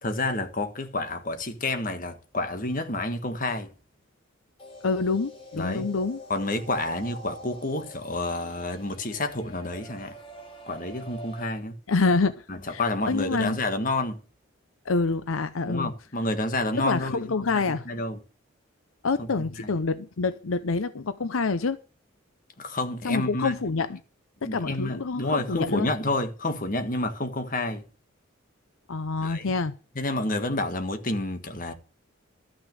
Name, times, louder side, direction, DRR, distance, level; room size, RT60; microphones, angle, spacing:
voice 1, 0.0-3.7 5.5-5.9 6.3-10.1 10.7-11.7 12.5-14.2 15.6-17.2 17.8-18.2 19.6-19.7 22.6-23.5 24.4-27.8 29.2-29.4 29.9-31.7, left 2 dB, 40° left, 1.5 m, -29 dB
sound 1, 4.6-11.4, equal, 25° left, 2.4 m, -44 dB
voice 2, 4.8-6.2 11.9-12.3 12.7-12.8 13.1-13.6 14.9-15.9 16.8-17.9 19.0-21.8 23.0-24.0 24.4-25.9 28.9-29.7, left 4 dB, 80° left, 0.7 m, -26 dB
13.0 x 6.1 x 7.7 m
head